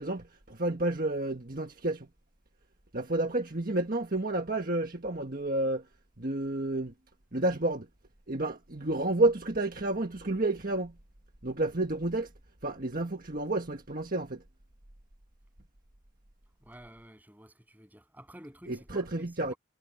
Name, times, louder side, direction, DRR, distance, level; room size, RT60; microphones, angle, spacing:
voice 1, 0.0-2.1 2.9-5.8 6.2-6.9 7.3-7.9 8.3-10.9 11.4-12.3 12.6-14.4 18.7-19.5, right 2 dB, 40° right, 1.6 m, -30 dB
voice 2, 16.6-19.6, equal, 10° right, 7.7 m, -51 dB
head